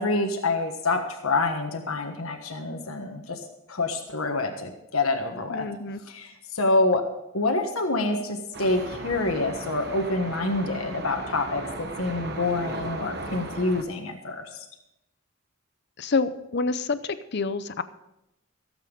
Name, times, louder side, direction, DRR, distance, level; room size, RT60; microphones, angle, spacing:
voice 1, 0.0-3.4 3.7-5.7 6.1-7.0 7.3-14.4, left 2 dB, 90° left, 4 dB, 1.4 m, -27 dB
voice 2, 5.5-6.0 16.0-17.8, left 4 dB, 50° left, 13 dB, 0.7 m, -28 dB
sound 1, 8.5-13.8, right 2 dB, 50° right, 1.1 m, -36 dB
16.5 x 8.2 x 5.3 m, 0.85 s
head